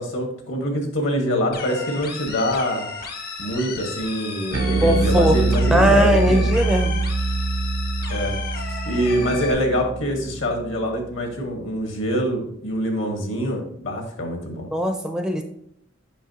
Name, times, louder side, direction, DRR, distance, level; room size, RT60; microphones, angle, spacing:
voice 1, 0.0-2.9 3.4-6.5 8.1-8.3 8.8-14.7, equal, 70° left, 3 dB, 1.5 m, -25 dB
sound 1, 1.5-9.5, left 4 dB, 50° left, 1.0 m, -34 dB
Bass guitar, 4.5-11.0, right 2 dB, 60° right, 0.5 m, -24 dB
voice 2, 4.8-5.4 5.7-7.0 14.7-15.4, equal, 5° right, 5 dB, 0.4 m, -19 dB
7.1 x 5.4 x 2.8 m, 0.72 s
head